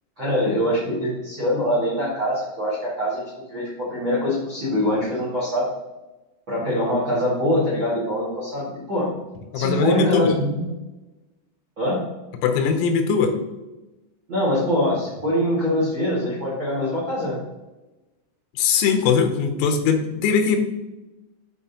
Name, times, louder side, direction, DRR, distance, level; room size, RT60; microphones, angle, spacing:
voice 1, 0.2-3.2 3.5-5.7 6.5-9.1 9.5-10.6 11.8-12.0 14.3-17.4, left 1 dB, 80° right, -5 dB, 1.0 m, -23 dB
voice 2, 9.5-10.4 12.4-13.4 18.6-20.6, left 6 dB, 90° left, 5 dB, 3.5 m, -20 dB
10.0 x 4.3 x 2.9 m, 1.0 s
omnidirectional pair, 5.8 m